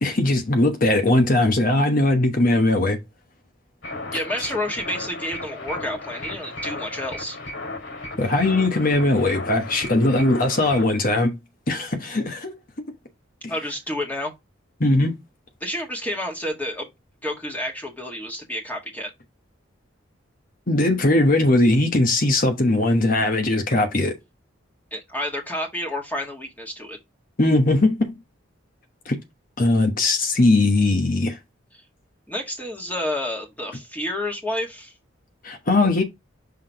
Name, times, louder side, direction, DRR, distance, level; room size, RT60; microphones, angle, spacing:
voice 1, 0.0-3.0 8.2-11.3 11.7-12.6 13.4-13.5 14.8-15.1 20.7-24.2 27.4-28.1 29.1-29.2 29.6-31.4 35.4-36.0, left 2 dB, 45° left, 1.0 m, -19 dB
sound 1, 3.8-10.9, left 2 dB, 70° left, 2.7 m, -35 dB
voice 2, 4.1-7.4 13.5-14.3 15.6-16.9 17.2-19.1 24.9-27.0 32.3-34.9, left 1 dB, 10° left, 1.7 m, -29 dB
5.9 x 3.6 x 4.6 m
head